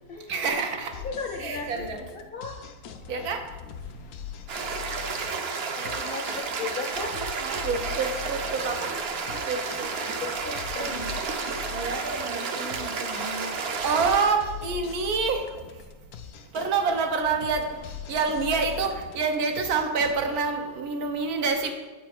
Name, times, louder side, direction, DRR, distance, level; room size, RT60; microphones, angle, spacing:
voice 1, 0.3-0.9 1.4-2.0 3.1-3.4 7.4-8.9 9.5-9.9 10.8-11.1 11.7-13.5 13.8-15.4 16.5-17.7 18.1-21.7, right 5 dB, 85° right, 5 dB, 1.3 m, -27 dB
sound 1, 0.9-20.4, left 9 dB, 80° left, 1.1 m, -42 dB
voice 2, 1.0-2.5 5.7-7.2 10.2-11.2, left 4 dB, 55° left, 2 dB, 0.6 m, -36 dB
sound 2, 4.5-14.3, right 5 dB, 55° right, 0.7 m, -31 dB
8.2 x 4.1 x 4.7 m, 1.2 s
omnidirectional pair, 1.5 m